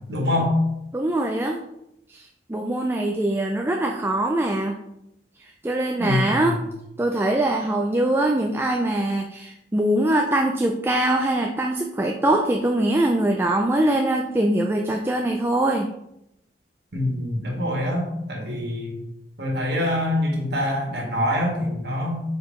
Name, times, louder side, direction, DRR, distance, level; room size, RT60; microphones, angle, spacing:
voice 1, 0.1-0.6 6.0-6.6 16.9-18.9 19.4-22.2, left 1 dB, 65° right, -1 dB, 1.7 m, -25 dB
voice 2, 0.9-1.6 2.1-4.8 5.4-6.6 7.0-15.9, right 1 dB, 15° right, 2 dB, 0.4 m, -23 dB
5.0 x 4.6 x 4.4 m, 0.82 s
head